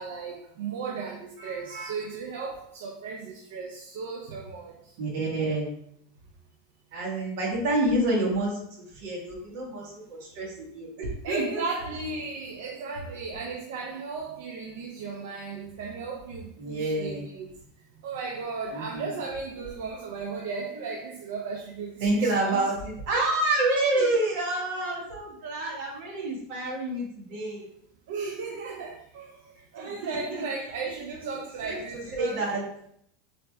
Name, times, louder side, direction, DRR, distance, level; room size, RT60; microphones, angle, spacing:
voice 1, 0.0-4.7 11.2-17.5 18.0-22.7 23.9-24.1 28.1-32.5, right 4 dB, 70° right, -1 dB, 0.6 m, -35 dB
voice 2, 5.0-5.7 6.9-11.6 16.6-17.3 18.7-19.2 22.0-27.6 29.7-30.2 31.7-32.6, right 2 dB, 50° right, -3 dB, 1.6 m, -28 dB
4.0 x 3.3 x 3.3 m, 0.70 s
supercardioid pair, 170°, 0 cm